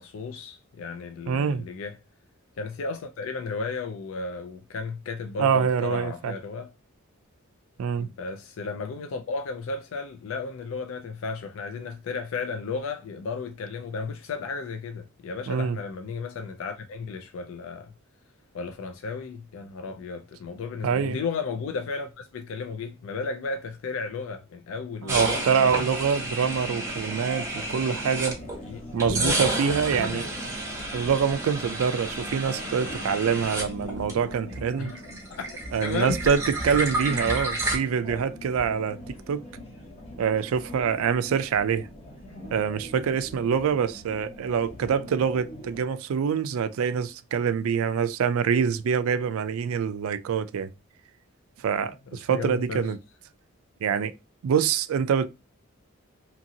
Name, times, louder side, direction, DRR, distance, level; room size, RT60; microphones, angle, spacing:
voice 1, 0.0-2.0 2.6-6.7 8.0-17.9 18.5-25.4 28.6-29.4 29.9-30.3 34.8-35.0 35.3-35.5 35.8-36.2 52.3-52.9, left 4 dB, 65° left, 0.3 m, -34 dB
voice 2, 1.3-1.7 5.4-6.3 7.8-8.1 15.5-15.8 20.8-21.2 25.0-28.4 28.9-30.3 30.9-34.9 35.7-39.4 40.2-41.9 42.5-50.7 51.6-53.0 53.8-54.1 54.4-55.3, right 6 dB, 75° right, 0.3 m, -25 dB
sound 1, 25.1-28.6 29.0-34.6 34.8-37.8, right 2 dB, 15° right, 0.9 m, -31 dB
sound 2, 26.0-45.8, left 1 dB, 30° left, 0.8 m, -42 dB
2.9 x 2.7 x 2.6 m
head